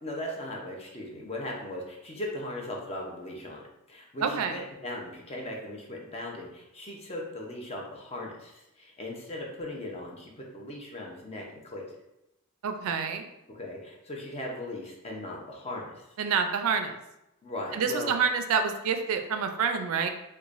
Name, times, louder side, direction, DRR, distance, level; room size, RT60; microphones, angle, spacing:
voice 1, 0.0-11.8 13.5-16.0 16.5-16.6 17.4-18.2, left 1 dB, 30° left, -1 dB, 0.6 m, -38 dB
voice 2, 4.2-4.5 12.6-13.3 16.2-17.0 17.8-20.1, right 6 dB, 65° right, 6 dB, 0.4 m, -27 dB
4.8 x 2.2 x 2.5 m, 0.89 s
head